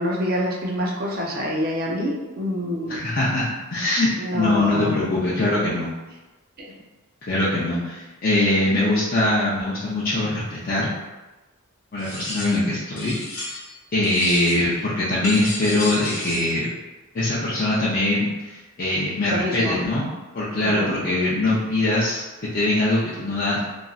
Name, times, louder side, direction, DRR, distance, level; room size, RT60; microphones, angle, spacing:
voice 1, 0.0-3.1 4.2-5.1 6.6-6.7 19.3-19.8 20.6-20.9, equal, 40° right, -2 dB, 0.5 m, -26 dB
voice 2, 2.9-5.9 7.2-10.9 11.9-13.6 13.9-16.7 17.1-20.1 20.3-22.2 22.5-23.6, left 1 dB, 40° left, -9 dB, 0.5 m, -22 dB
sound 1, 12.0-12.7 13.0-13.8 14.0-14.7 15.2-16.6, left 2 dB, 85° left, 0.9 m, -32 dB
3.0 x 2.5 x 2.3 m, 1.1 s
head